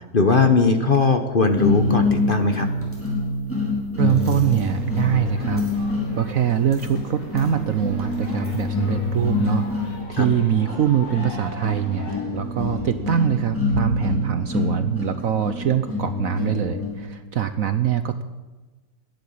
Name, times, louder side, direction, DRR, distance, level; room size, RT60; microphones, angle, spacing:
voice 1, 0.1-2.7 10.1-10.3, left 4 dB, 35° left, 6 dB, 1.0 m, -19 dB
sound 1, 1.6-17.0, left 2 dB, 5° left, 4.2 m, -26 dB
voice 2, 4.0-5.6 6.2-18.2, right 10 dB, 65° right, 11 dB, 0.9 m, -23 dB
sound 2, 4.7-12.2, left 1 dB, 70° left, 5.0 m, -39 dB
16.0 x 10.5 x 8.6 m, 1.2 s
omnidirectional pair, 1.9 m